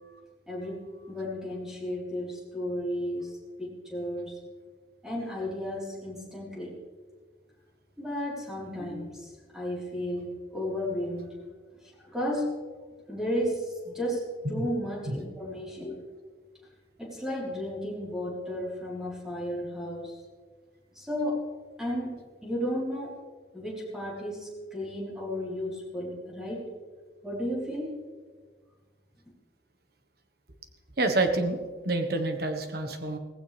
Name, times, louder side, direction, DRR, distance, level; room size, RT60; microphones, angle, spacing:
voice 1, 0.5-3.3 3.6-4.4 5.0-6.8 8.0-11.4 11.7-12.5 13.1-16.1 17.0-20.2 20.9-21.4 21.8-23.1 23.5-26.7 27.2-27.9, equal, 5° right, -5 dB, 4.2 m, -33 dB
voice 2, 31.0-31.6 31.8-33.2, right 2 dB, 60° right, 6 dB, 1.4 m, -27 dB
18.0 x 16.0 x 3.5 m, 1.5 s
head